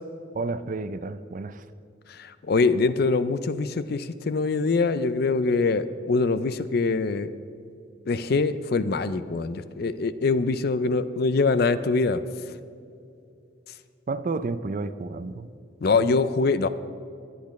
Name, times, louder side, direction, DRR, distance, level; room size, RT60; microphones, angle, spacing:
voice 1, 0.3-1.7 14.1-15.5 15.9-16.1, right 3 dB, 40° right, 13 dB, 0.4 m, -31 dB
voice 2, 2.1-7.3 8.1-12.2 15.8-16.7, left 4 dB, 50° left, 13 dB, 0.4 m, -24 dB
18.5 x 10.5 x 3.1 m, 2.6 s
head